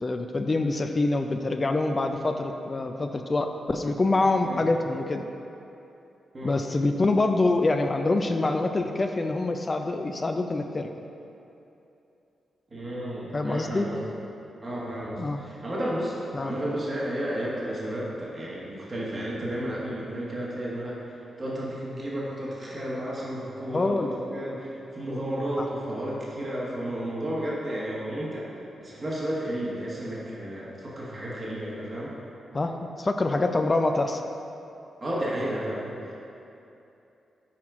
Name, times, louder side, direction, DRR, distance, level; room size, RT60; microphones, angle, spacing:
voice 1, 0.0-5.2 6.4-10.9 13.3-13.9 15.2-15.4 16.3-16.6 23.7-24.2 25.6-25.7 32.5-32.7 33.0-34.2, left 2 dB, 40° left, 5 dB, 0.4 m, -25 dB
voice 2, 12.7-14.0 14.6-21.0 21.4-28.5 28.8-32.1 35.0-36.2, right 1 dB, 40° right, -6 dB, 1.4 m, -32 dB
5.8 x 4.4 x 4.8 m, 2.8 s
hypercardioid pair, 40°, 0 cm